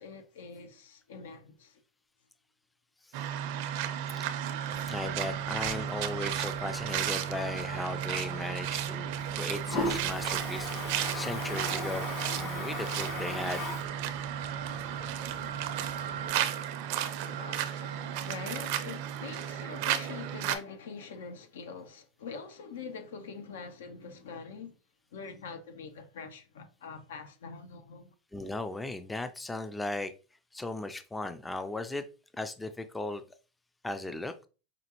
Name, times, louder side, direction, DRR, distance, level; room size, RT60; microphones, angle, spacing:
voice 1, 0.0-1.8 17.3-24.8 25.1-28.1, left 5 dB, 85° left, 0.8 m, -44 dB
sound 1, 3.1-20.6, right 10 dB, 65° right, 0.5 m, -34 dB
Toilet flush, 4.7-16.3, left 2 dB, 45° left, 1.6 m, -40 dB
voice 2, 4.9-12.1 12.4-13.6 28.3-30.1 30.5-32.0 32.3-33.2 33.8-34.5, left 2 dB, 10° left, 0.4 m, -37 dB
5.1 x 2.4 x 3.0 m
supercardioid pair, 120°, 0 cm